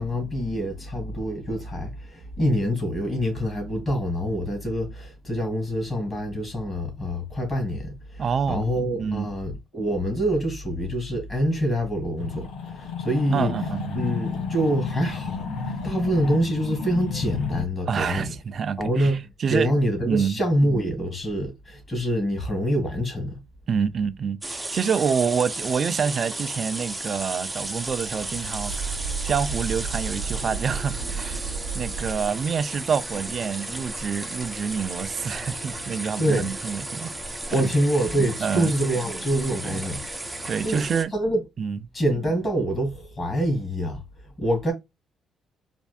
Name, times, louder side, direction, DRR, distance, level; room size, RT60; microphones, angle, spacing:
voice 1, 0.0-13.5 13.9-18.3 18.8-19.2 19.5-23.4 36.2-36.5 37.5-40.0 40.6-40.8 41.1-41.4 41.9-44.0 44.4-44.7, equal, 30° left, 2.5 m, -26 dB
voice 2, 8.2-8.7 9.0-9.3 13.3-14.0 17.9-19.7 20.1-20.4 23.7-29.0 29.2-31.5 31.7-37.1 37.6-37.7 38.4-38.7 39.6-39.8 40.5-41.1 41.6-41.8, right 6 dB, 50° right, 0.4 m, -27 dB
sound 1, 12.2-17.6, left 5 dB, 80° left, 0.7 m, -31 dB
sound 2, 24.4-41.0, right 2 dB, 10° right, 0.7 m, -34 dB
sound 3, 27.5-32.1, right 6 dB, 90° right, 0.7 m, -33 dB
4.3 x 2.6 x 2.3 m
cardioid pair, 85°, 0 cm